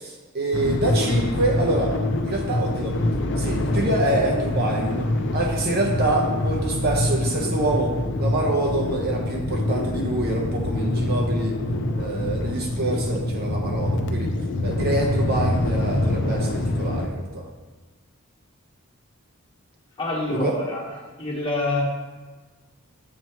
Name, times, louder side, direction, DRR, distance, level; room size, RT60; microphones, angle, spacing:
voice 1, 0.0-2.0 2.2-3.0 3.4-11.6 11.9-14.3 14.6-17.5 20.3-20.5, right 1 dB, 50° right, -1 dB, 0.8 m, -26 dB
sound 1, 0.5-17.1, left 1 dB, 60° left, 0.5 m, -25 dB
voice 2, 20.0-20.9 21.2-21.8, left 2 dB, 25° left, -5 dB, 1.2 m, -26 dB
7.3 x 3.0 x 4.5 m, 1.3 s
head